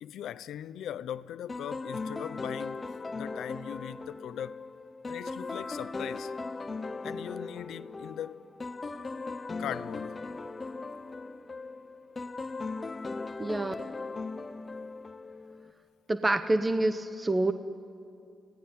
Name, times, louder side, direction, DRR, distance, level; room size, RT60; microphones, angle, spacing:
voice 1, 0.0-2.9 3.1-4.6 5.1-6.3 7.0-8.5 9.6-10.2, left 10 dB, 90° left, 0.7 m, -39 dB
sound 1, 1.5-15.7, left 3 dB, 25° left, 0.8 m, -38 dB
voice 2, 13.4-13.7 16.1-17.5, right 2 dB, 15° right, 0.8 m, -27 dB
30.0 x 17.5 x 9.7 m
cardioid pair, 135°, 0 cm